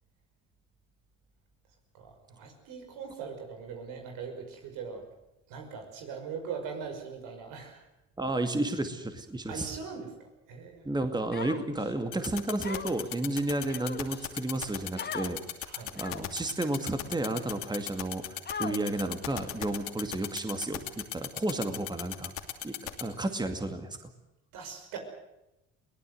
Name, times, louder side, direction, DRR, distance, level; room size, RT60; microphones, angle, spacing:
voice 1, 1.9-5.0 5.5-7.8 9.5-10.9 15.7-15.9 24.5-25.0, right 6 dB, 80° right, 4 dB, 5.9 m, -41 dB
voice 2, 8.2-9.7 10.8-15.4 15.9-22.3 22.6-24.0, right 2 dB, 15° right, 7 dB, 2.3 m, -32 dB
Human voice, 11.3-11.9 12.6-13.1 13.7-14.3 15.0-15.3 16.0-16.4 17.1-17.2 18.5-19.1, left 5 dB, 30° left, 2.0 m, -39 dB
sound 1, 12.1-23.0, left 14 dB, 80° left, 2.8 m, -35 dB
22.5 x 18.5 x 7.9 m, 0.92 s
supercardioid pair, 80°, 32 cm